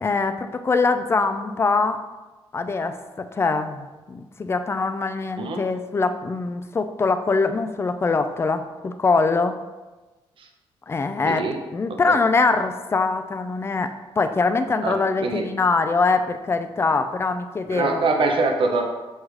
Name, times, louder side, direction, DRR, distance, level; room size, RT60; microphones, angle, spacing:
voice 1, 0.0-2.0 2.5-9.6 10.9-18.0, left 4 dB, 25° left, 9 dB, 0.3 m, -23 dB
voice 2, 11.3-11.6 12.1-12.2 14.8-15.4 17.7-18.8, right 3 dB, 60° right, 3 dB, 0.6 m, -23 dB
6.5 x 2.3 x 3.1 m, 1.2 s
cardioid pair, 90°, 10 cm